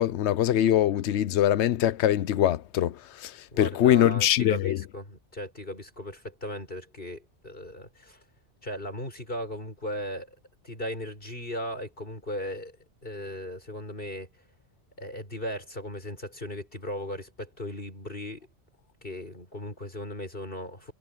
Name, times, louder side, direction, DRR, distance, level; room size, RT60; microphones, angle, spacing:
voice 1, 0.0-2.9 3.2-3.3 3.6-4.8, left 12 dB, 75° left, 1.0 m, -23 dB
voice 2, 3.5-8.2 8.6-10.3 10.6-12.8 13.0-14.3 15.0-18.5 19.0-20.9, equal, 50° left, 6.5 m, -37 dB
omnidirectional pair, 1.2 m